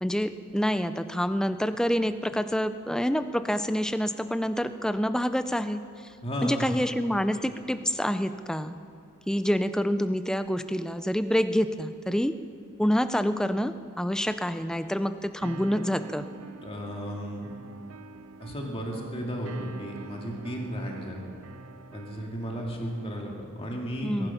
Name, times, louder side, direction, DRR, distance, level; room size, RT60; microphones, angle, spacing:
voice 1, 0.0-6.1 6.4-8.7 9.3-12.3 12.8-16.2 24.0-24.3, equal, 5° left, 11 dB, 0.4 m, -27 dB
voice 2, 6.2-6.8 16.6-17.5 18.4-21.2 21.9-24.3, equal, 25° left, -1 dB, 2.2 m, -34 dB
sound 1, 15.4-23.5, right 4 dB, 75° right, 0.5 m, -46 dB
22.0 x 11.0 x 5.7 m, 2.5 s
head